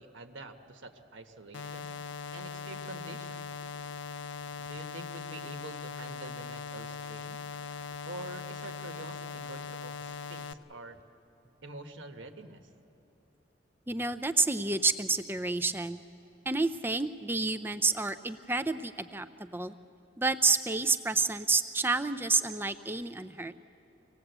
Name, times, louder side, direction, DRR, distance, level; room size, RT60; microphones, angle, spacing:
voice 1, 0.0-1.9 2.3-3.5 4.6-7.4 8.1-11.0 11.6-12.7, right 2 dB, 75° right, 6 dB, 1.3 m, -46 dB
sound 1, 1.5-10.5, left 5 dB, 70° left, 0.5 m, -40 dB
voice 2, 13.9-16.0 16.5-19.7 20.2-23.5, right 3 dB, 10° right, 11 dB, 0.5 m, -29 dB
25.5 x 18.5 x 8.0 m, 2.9 s
head